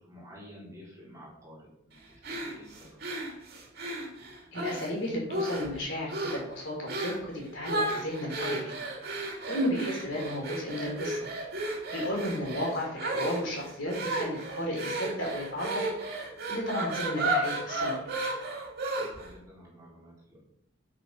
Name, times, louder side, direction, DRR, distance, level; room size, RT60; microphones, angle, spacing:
voice 1, 0.0-3.0 18.8-20.4, equal, 15° right, -5 dB, 4.2 m, -51 dB
sound 1, 2.2-4.9 5.3-5.8 6.1-6.5 6.9-7.2 7.6-19.3, right 2 dB, 50° right, 3.0 m, -33 dB
voice 2, 4.5-8.7 9.5-11.2 11.9-15.9 16.5-17.9, equal, 55° left, -1 dB, 4.2 m, -33 dB
9.8 x 8.6 x 5.9 m, 0.78 s
head